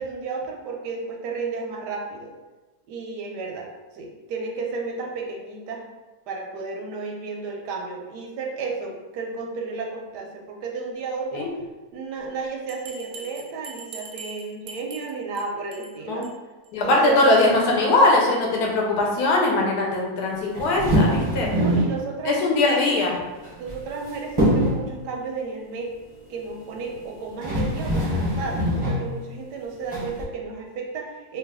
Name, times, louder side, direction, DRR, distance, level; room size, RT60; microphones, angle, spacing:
voice 1, 0.0-2.3 2.9-3.7 3.9-5.9 6.3-11.5 11.9-16.3 16.8-17.3 21.5-22.9 23.6-25.9 26.3-31.4, right 4 dB, 90° right, 1 dB, 1.2 m, -33 dB
Bell, 12.7-15.4 15.7-15.9 16.2-16.3 16.6-16.7 17.1-17.2, right 4 dB, 70° right, 0.8 m, -41 dB
voice 2, 16.7-21.5 22.3-23.1, left 2 dB, 75° left, -1 dB, 1.1 m, -20 dB
sound 1, 20.5-22.0 23.4-24.0 24.4-24.9 26.9-27.0 27.4-29.1 29.9-30.2, equal, 30° right, 0.4 m, -23 dB
3.1 x 2.2 x 3.4 m, 1.2 s
omnidirectional pair, 1.7 m